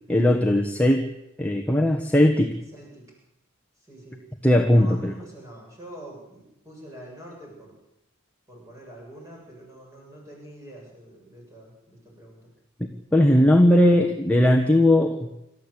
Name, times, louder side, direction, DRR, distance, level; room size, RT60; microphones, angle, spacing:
voice 1, 0.1-1.0 1.4-2.5 4.4-5.1 12.8-15.3, left 1 dB, 5° left, 2 dB, 1.3 m, -19 dB
voice 2, 2.7-3.1 3.8-4.2 4.7-7.7 8.5-12.5, right 1 dB, 15° right, -2 dB, 7.9 m, -45 dB
27.5 x 13.5 x 8.4 m, 0.88 s
head